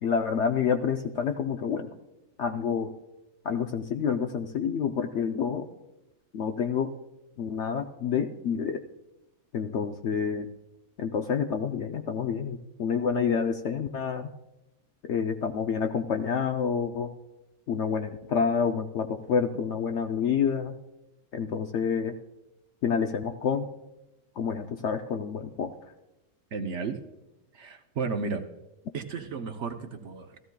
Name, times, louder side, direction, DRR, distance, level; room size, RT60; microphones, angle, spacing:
voice 1, 0.0-1.9 2.4-2.9 3.4-5.7 6.3-6.9 7.4-8.8 9.5-10.5 11.0-14.3 15.0-17.1 17.7-20.7 21.3-22.2 22.8-23.7 24.4-25.9, left 6 dB, 65° left, 6 dB, 0.7 m, -28 dB
voice 2, 26.5-27.0 27.5-28.4 28.9-30.4, right 4 dB, 60° right, 6 dB, 0.9 m, -33 dB
15.5 x 14.0 x 2.2 m, 0.96 s
omnidirectional pair, 1.6 m